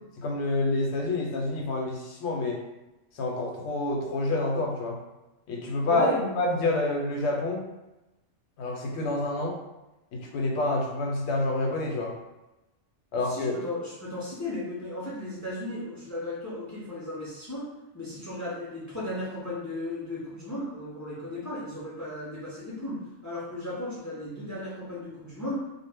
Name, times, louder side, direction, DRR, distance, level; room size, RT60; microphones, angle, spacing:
voice 1, 0.2-2.6 3.1-5.0 5.5-6.1 6.4-7.6 8.6-9.6 10.1-12.2 13.1-13.5, left 2 dB, 70° left, 0 dB, 0.8 m, -28 dB
voice 2, 5.8-6.4 13.3-17.7 17.9-25.6, left 1 dB, 30° left, -7 dB, 0.3 m, -35 dB
2.1 x 2.0 x 3.3 m, 1.0 s
omnidirectional pair, 1.2 m